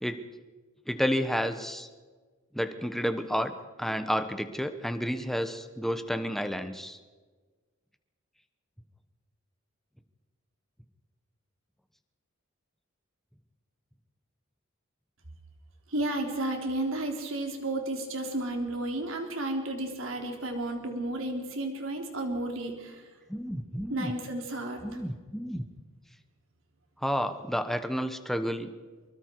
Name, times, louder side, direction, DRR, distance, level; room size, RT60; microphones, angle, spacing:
voice 1, 0.9-1.9 2.5-7.0 23.3-24.1 24.8-25.6 27.0-28.7, equal, ahead, 9 dB, 1.1 m, -31 dB
voice 2, 15.9-23.0 23.9-24.8, right 1 dB, 70° right, 3 dB, 3.7 m, -32 dB
24.5 x 23.0 x 4.7 m, 1.4 s
head